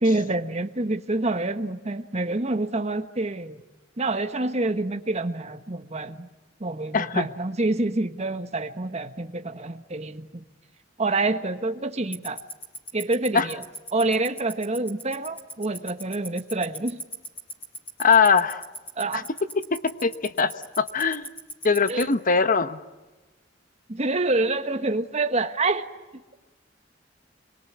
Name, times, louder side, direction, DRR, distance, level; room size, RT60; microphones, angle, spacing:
voice 1, 0.0-3.6 4.0-6.3 6.6-10.4 11.0-12.4 12.9-13.6 13.9-17.0 19.0-19.3 21.9-22.1 23.9-25.9, right 2 dB, 35° right, 9 dB, 1.3 m, -27 dB
voice 2, 6.9-7.3 13.3-13.5 18.0-18.6 19.1-19.2 19.7-21.3 21.6-22.8, left 5 dB, 45° left, 12 dB, 1.0 m, -21 dB
Tick-tock, 12.1-22.0, left 1 dB, 10° left, 4.5 m, -35 dB
26.5 x 22.5 x 9.6 m, 1.2 s
head